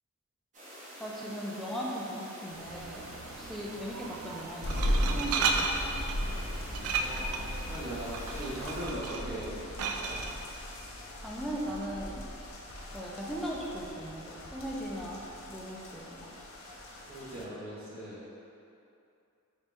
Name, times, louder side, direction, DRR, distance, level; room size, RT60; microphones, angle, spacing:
sound 1, 0.5-8.9, right 1 dB, 35° right, 0.7 m, -47 dB
voice 1, 1.0-6.0 11.2-12.3 12.9-16.3, equal, ahead, -4 dB, 0.4 m, -38 dB
Glass, 2.5-10.3, right 4 dB, 90° right, 0.3 m, -35 dB
sound 2, 4.6-17.4, equal, 70° left, 0.5 m, -38 dB
voice 2, 6.8-9.5 10.0-10.2 17.1-18.2, equal, 65° right, -9 dB, 1.2 m, -40 dB
4.1 x 2.6 x 3.4 m, 2.7 s
head